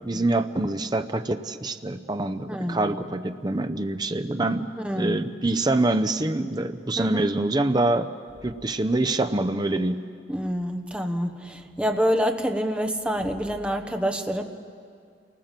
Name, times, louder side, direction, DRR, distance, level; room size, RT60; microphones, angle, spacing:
voice 1, 0.0-4.7 5.0-8.1 8.4-10.0, right 2 dB, 25° right, 9 dB, 0.7 m, -25 dB
voice 2, 2.5-2.9 4.8-5.2 7.0-7.3 10.3-14.4, equal, 5° right, 5 dB, 1.2 m, -27 dB
28.5 x 19.5 x 7.5 m, 2.3 s
head